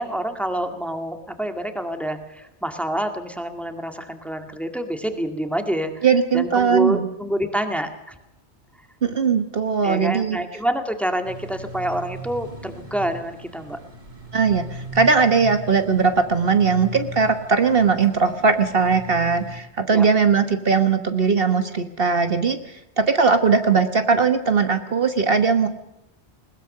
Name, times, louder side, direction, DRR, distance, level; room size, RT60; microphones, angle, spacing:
voice 1, 0.0-6.1 6.3-8.1 9.8-13.8 19.9-20.1, right 1 dB, ahead, 6 dB, 2.0 m, -27 dB
voice 2, 6.0-7.1 9.0-10.4 14.3-22.6 23.0-25.7, right 5 dB, 55° right, 8 dB, 1.4 m, -19 dB
sound 1, 11.2-19.6, right 1 dB, 40° right, 3.1 m, -38 dB
20.5 x 20.0 x 6.7 m, 0.89 s
omnidirectional pair, 1.1 m